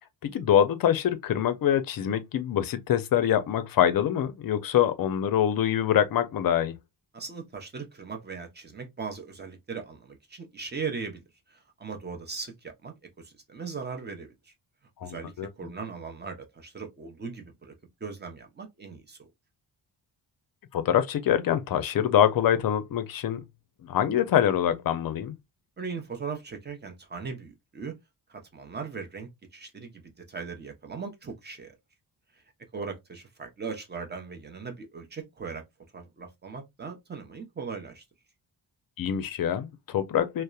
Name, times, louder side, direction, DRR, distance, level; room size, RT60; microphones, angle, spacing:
voice 1, 0.2-6.7 15.0-15.5 20.7-23.4 23.8-25.3 39.0-40.4, left 10 dB, 50° left, 0.5 m, -25 dB
voice 2, 7.1-11.2 11.5-14.5 15.0-17.7 18.0-19.2 25.8-28.0 28.3-31.7 32.3-32.4 32.7-35.6 35.9-38.0, right 5 dB, 25° right, 0.6 m, -39 dB
2.8 x 2.0 x 2.2 m
wide cardioid pair, 130°, 45 cm